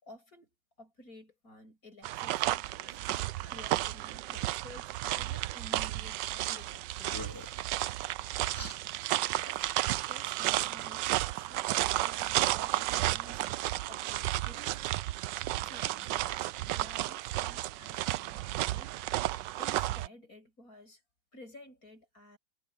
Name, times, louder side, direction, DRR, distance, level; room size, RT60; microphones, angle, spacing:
voice 1, 0.0-3.0 3.5-7.4 9.4-15.0 15.3-19.0 19.6-21.0 21.3-22.4, left 1 dB, 50° left, 8.2 m, -54 dB
sound 1, 2.0-20.1, right 15 dB, 75° right, 1.2 m, -32 dB
sound 2, 6.4-6.7 7.0-7.6 8.5-8.8, left 2 dB, 10° left, 2.6 m, -45 dB
omnidirectional pair, 2.0 m